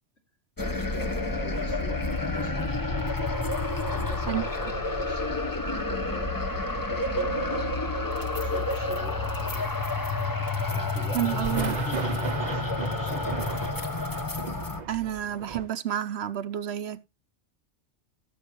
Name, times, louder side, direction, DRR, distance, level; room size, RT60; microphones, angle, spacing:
sound 1, 0.6-14.8, left 2 dB, 20° left, 0.9 m, -29 dB
voice 1, 0.9-2.7 3.8-8.0 8.4-9.7 10.7-13.6, left 1 dB, 65° left, 2.9 m, -43 dB
sound 2, 4.7-8.8 9.4-9.5 10.3-10.4 10.9-11.0 11.3-15.7, right 6 dB, 45° right, 0.8 m, -38 dB
voice 2, 11.1-11.8 14.9-17.1, right 11 dB, 70° right, 0.9 m, -30 dB
16.0 x 7.3 x 3.0 m
omnidirectional pair, 1.2 m